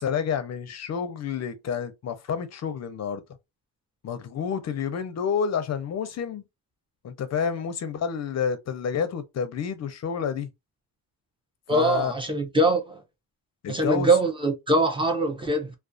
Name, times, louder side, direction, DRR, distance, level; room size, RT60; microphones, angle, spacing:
voice 1, 0.0-3.2 4.0-6.4 7.0-10.5 11.7-12.1 13.6-14.1, left 7 dB, 45° left, 0.5 m, -29 dB
voice 2, 11.7-13.0 13.7-15.7, right 2 dB, 15° right, 0.4 m, -23 dB
2.3 x 2.3 x 2.4 m
cardioid pair, 150°, 40 cm